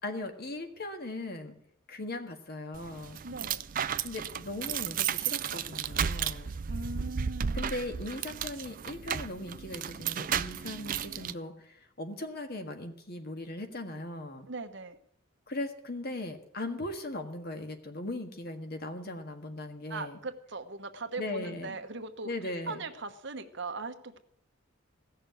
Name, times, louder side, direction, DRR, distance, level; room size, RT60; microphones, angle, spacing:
voice 1, 0.0-1.6 1.9-3.2 4.0-6.5 7.5-14.5 15.5-20.2 21.2-21.8 22.2-22.8, left 2 dB, 50° left, 6 dB, 1.6 m, -38 dB
sound 1, 2.7-11.3, right 8 dB, 45° right, 0.4 m, -34 dB
voice 2, 3.2-3.6 6.7-7.7 14.5-15.0 19.9-24.2, right 3 dB, 60° right, 8 dB, 1.1 m, -40 dB
16.0 x 6.7 x 9.1 m, 0.69 s
head